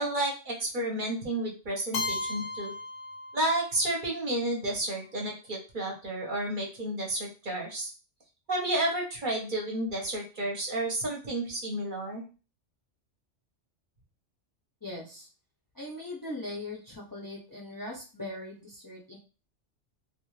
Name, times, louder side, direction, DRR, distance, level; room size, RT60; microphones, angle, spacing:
voice 1, 0.0-2.7 3.3-7.9 8.5-12.2, right 1 dB, 45° right, -1 dB, 0.9 m, -31 dB
Keyboard (musical), 1.9-3.9, left 2 dB, 60° left, 0.7 m, -35 dB
voice 2, 14.8-15.3 15.7-19.2, left 1 dB, 25° left, -4 dB, 0.4 m, -40 dB
2.5 x 2.4 x 3.1 m, 0.33 s
omnidirectional pair, 1.2 m